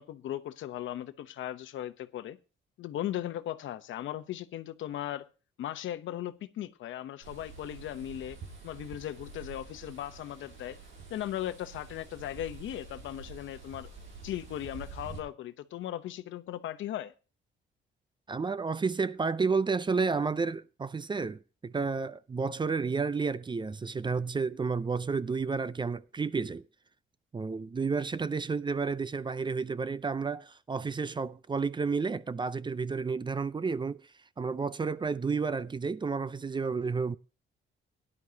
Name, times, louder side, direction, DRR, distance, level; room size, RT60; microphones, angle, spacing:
voice 1, 0.0-2.4 2.8-5.3 5.6-8.4 8.6-10.8 11.1-13.9 14.2-17.1, left 12 dB, 75° left, 0.9 m, -37 dB
sound 1, 7.2-15.2, right 4 dB, 75° right, 5.4 m, -47 dB
voice 2, 18.3-26.6 27.3-34.1 34.4-37.2, right 4 dB, 25° right, 0.5 m, -31 dB
17.0 x 11.0 x 2.8 m
cardioid pair, 90°, 20 cm